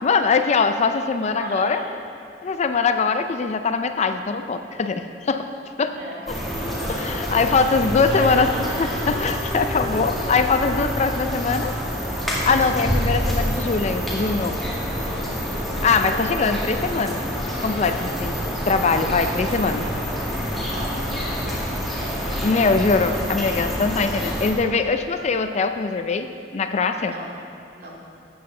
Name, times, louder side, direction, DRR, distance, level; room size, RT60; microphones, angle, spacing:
voice 1, 0.0-1.8 2.4-5.5 5.8-5.9 6.9-8.5 8.8-11.7 12.4-14.5 15.8-17.2 17.6-19.9 22.4-27.1, left 4 dB, 40° left, 8 dB, 0.4 m, -22 dB
voice 2, 1.4-1.9 5.9-6.2 7.6-7.7 8.1-9.0 10.7-11.2 16.4-16.6 20.7-21.8 27.0-27.3 27.8-28.0, right 1 dB, 55° right, -4 dB, 2.3 m, -37 dB
Wind instrument woodwind instrument, 5.8-14.1, equal, 35° right, 1.5 m, -39 dB
sound 1, 6.3-24.5, equal, ahead, 1.8 m, -27 dB
12.5 x 8.7 x 3.8 m, 2.6 s
head